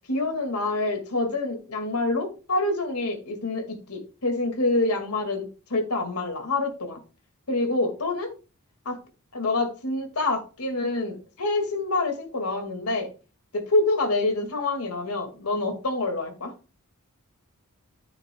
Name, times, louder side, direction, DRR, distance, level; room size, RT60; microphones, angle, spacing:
voice 1, 0.1-7.0 7.5-8.3 9.3-13.1 13.5-16.5, left 2 dB, 80° left, 2.1 m, -26 dB
10.5 x 8.7 x 2.3 m
head